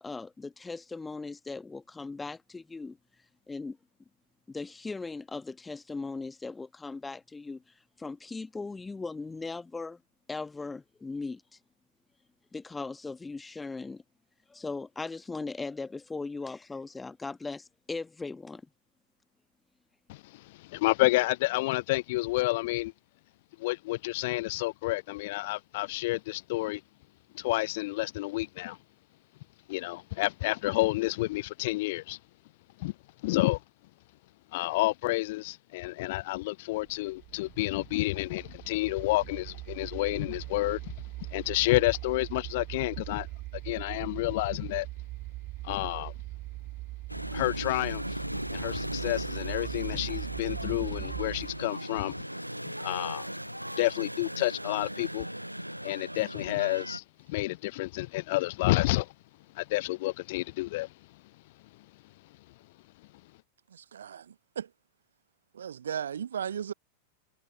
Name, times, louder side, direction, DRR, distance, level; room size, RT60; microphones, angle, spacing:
voice 1, 0.0-3.0 3.5-3.8 4.5-10.0 10.3-11.6 12.5-14.0 14.5-18.6, left 3 dB, 10° left, 1.5 m, -38 dB
voice 2, 20.1-22.9 23.6-26.8 27.3-28.8 29.7-32.2 32.8-32.9 33.2-33.6 34.5-40.9 41.2-43.3 43.6-44.9 45.6-46.1 47.3-48.2 48.5-52.1 52.6-53.3 53.8-55.3 55.8-59.1 59.5-60.9, left 20 dB, 50° left, 0.5 m, -30 dB
sound 1, 36.8-51.7, right 19 dB, 40° right, 4.2 m, -41 dB
sound 2, 47.1-57.0, equal, 90° right, 0.4 m, -37 dB
voice 3, 63.7-64.7 65.5-66.7, right 8 dB, 65° right, 0.8 m, -36 dB
figure-of-eight pair, 90°, 0 cm